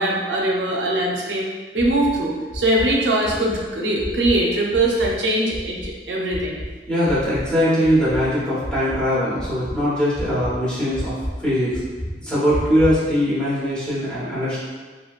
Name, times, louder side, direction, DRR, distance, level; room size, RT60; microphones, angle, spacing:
voice 1, 0.0-1.5 1.7-6.6, right 1 dB, 85° right, -2 dB, 0.5 m, -21 dB
sound 1, 1.8-2.2 2.5-2.9 3.2-3.6 4.0-4.4 4.7-5.2 5.5-5.9 6.3-6.7 7.1-7.5 7.8-8.2 8.6-9.1 9.4-9.8 10.1-10.5 10.9-11.3 11.7-12.1 12.5-13.0, equal, 35° left, 1.0 m, -30 dB
voice 2, 6.9-11.1 11.4-11.7 12.2-14.6, equal, 5° left, -10 dB, 1.0 m, -21 dB
3.1 x 2.6 x 2.4 m, 1.4 s
head